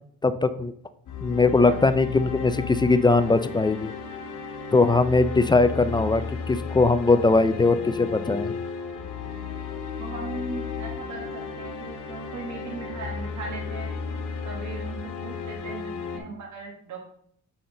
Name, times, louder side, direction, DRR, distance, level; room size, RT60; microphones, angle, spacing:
voice 1, 0.2-0.7 1.2-3.9 4.7-8.5, left 3 dB, 15° left, 11 dB, 0.3 m, -20 dB
sound 1, 1.1-16.2, left 5 dB, 75° left, 1.1 m, -34 dB
voice 2, 1.4-1.8 10.0-13.9 14.4-17.0, right 3 dB, 70° right, -1 dB, 1.4 m, -38 dB
6.8 x 4.2 x 3.7 m, 0.66 s
cardioid pair, 90°, 30 cm